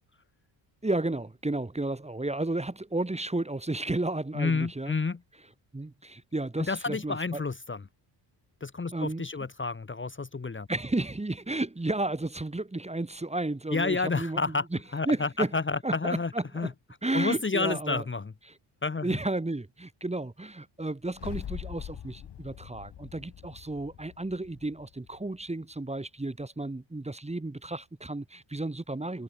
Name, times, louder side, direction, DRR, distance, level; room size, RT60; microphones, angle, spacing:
voice 1, 0.8-4.9 5.7-7.4 8.9-9.3 10.7-14.8 15.1-15.5 15.8-16.7 17.0-18.0 19.0-29.2, right 2 dB, 15° right, 2.2 m, -32 dB
voice 2, 4.3-5.2 6.7-7.8 8.6-10.7 13.7-14.6 14.9-16.7 17.1-18.3 18.8-19.2, left 4 dB, 25° left, 1.7 m, -30 dB
sound 1, 21.1-25.4, left 10 dB, 50° left, 1.8 m, -43 dB
supercardioid pair, 60°, 50 cm